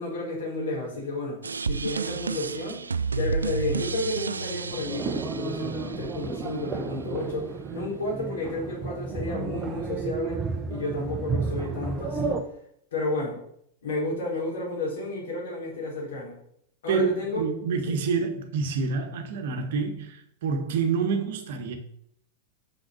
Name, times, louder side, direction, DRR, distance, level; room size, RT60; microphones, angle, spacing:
voice 1, 0.0-1.4 1.6-2.8 3.1-10.4 10.7-12.4 12.9-13.4 13.8-16.4 16.8-17.4, left 2 dB, 60° left, 3.7 m, -31 dB
sound 1, 1.4-6.4, right 5 dB, 75° right, 0.3 m, -31 dB
sound 2, 4.7-12.4, right 5 dB, 25° right, 1.0 m, -32 dB
voice 2, 16.9-21.8, right 5 dB, 55° right, 1.4 m, -27 dB
6.5 x 6.3 x 6.3 m
figure-of-eight pair, 90°, 0 cm